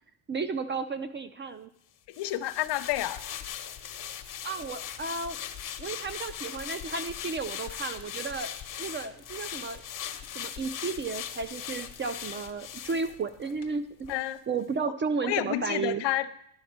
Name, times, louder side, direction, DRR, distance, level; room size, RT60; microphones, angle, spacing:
voice 1, 0.3-1.7 4.4-5.4 5.8-8.5 8.8-9.8 10.3-14.1 14.5-16.0, right 4 dB, 25° right, 11 dB, 0.4 m, -33 dB
sound 1, 2.1-13.7 14.0-14.2, left 10 dB, 45° left, 1.0 m, -39 dB
voice 2, 2.2-3.4 12.1-12.2 14.1-14.4 14.8-14.9 15.2-16.3, left 14 dB, 60° left, 11 dB, 0.7 m, -30 dB
11.5 x 4.3 x 6.6 m, 0.72 s
cardioid pair, 110°, 46 cm